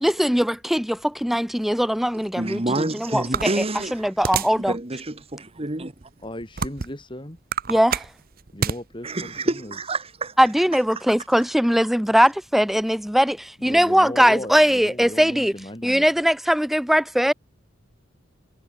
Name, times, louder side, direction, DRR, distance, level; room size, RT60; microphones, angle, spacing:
voice 1, 0.0-3.6 3.9-4.7 7.7-8.1 10.4-15.5 15.8-17.3, equal, ahead, 0.4 m, -20 dB
voice 2, 2.1-4.1 4.5-6.1 9.0-10.4, right 2 dB, 30° right, 1.5 m, -28 dB
sound 1, 3.3-4.7 5.2-5.3 6.0-7.0 7.4-8.8, right 6 dB, 45° right, 0.8 m, -27 dB
voice 3, 6.2-7.4 8.5-9.8 13.6-16.3, left 1 dB, 25° left, 5.4 m, -37 dB
head